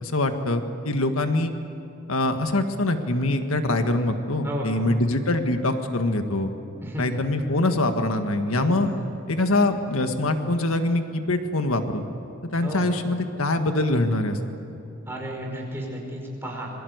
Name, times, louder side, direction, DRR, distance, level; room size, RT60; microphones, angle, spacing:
voice 1, 0.0-1.5 2.1-6.5 7.0-8.9 9.3-12.0 12.4-14.6, left 2 dB, 90° left, 6 dB, 1.7 m, -24 dB
voice 2, 4.4-4.9 6.8-7.0 8.5-8.9 12.6-13.0 15.1-16.7, equal, 10° right, -1 dB, 5.1 m, -33 dB
27.0 x 22.5 x 8.1 m, 2.8 s
head